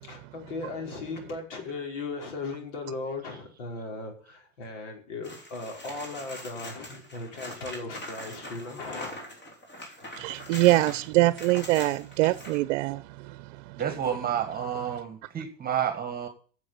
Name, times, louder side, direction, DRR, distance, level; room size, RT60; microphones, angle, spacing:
voice 1, 0.1-9.1, left 3 dB, 75° left, 5.1 m, -37 dB
sound 1, 5.2-12.6 15.3-15.4, equal, 30° left, 4.0 m, -42 dB
voice 2, 10.2-13.0, right 18 dB, 65° right, 0.7 m, -23 dB
voice 3, 13.8-16.3, right 9 dB, 25° right, 1.6 m, -30 dB
10.0 x 7.4 x 8.5 m
supercardioid pair, 130°, 37 cm